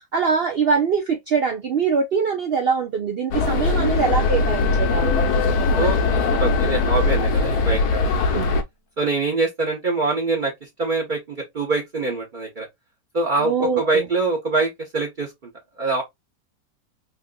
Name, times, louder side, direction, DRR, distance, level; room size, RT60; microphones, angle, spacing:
voice 1, 0.0-5.3 8.3-8.5 13.4-14.1, right 5 dB, 75° right, 0.5 m, -23 dB
sound 1, 3.3-8.6, left 3 dB, 70° left, 1.2 m, -20 dB
Bowed string instrument, 3.7-7.8, left 9 dB, 85° left, 0.4 m, -33 dB
voice 2, 5.8-8.4 9.0-12.7 13.1-15.3 15.8-16.0, right 3 dB, 40° right, 0.8 m, -24 dB
3.6 x 2.8 x 2.2 m
omnidirectional pair, 1.8 m